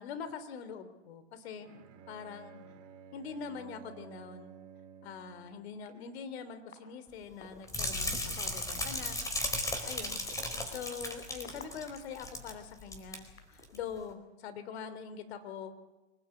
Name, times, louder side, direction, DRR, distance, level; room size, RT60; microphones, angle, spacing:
voice 1, 0.0-1.7 2.1-2.5 3.1-4.5 5.0-9.2 9.8-10.2 10.6-15.7, left 6 dB, 55° left, 10 dB, 3.3 m, -43 dB
Bowed string instrument, 1.6-5.7, right 7 dB, 40° right, 3.9 m, -52 dB
sound 1, 5.8-5.9 6.7-6.8 7.4-7.7 8.4-8.6 9.4-9.5 10.1-12.2 12.9-13.6, left 6 dB, 85° left, 5.9 m, -50 dB
sound 2, 7.7-12.5 12.8-13.2 13.6-13.8, left 1 dB, 10° left, 4.6 m, -35 dB
25.5 x 19.5 x 8.4 m, 1.1 s
hypercardioid pair, 115°, 37 cm